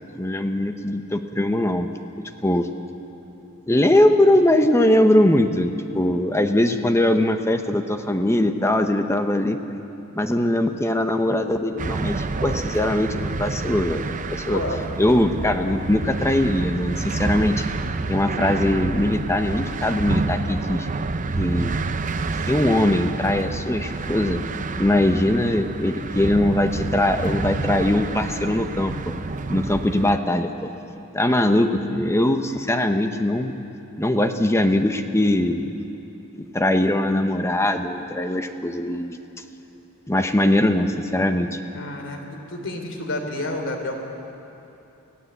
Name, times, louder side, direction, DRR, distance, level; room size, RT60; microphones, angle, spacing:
voice 1, 0.0-1.9 2.4-2.7 3.7-9.6 10.2-14.6 15.0-17.7 18.1-20.9 21.4-21.7 22.5-24.4 24.8-29.1 29.5-30.7 31.1-33.5 34.0-35.7 36.5-39.2 40.1-41.6, left 1 dB, 15° left, 7 dB, 0.9 m, -21 dB
sound 1, 11.8-30.2, right 3 dB, 35° right, 0.6 m, -28 dB
voice 2, 14.5-14.8 41.7-43.9, left 1 dB, 60° left, 4 dB, 3.1 m, -29 dB
25.0 x 16.5 x 8.0 m, 2.9 s
head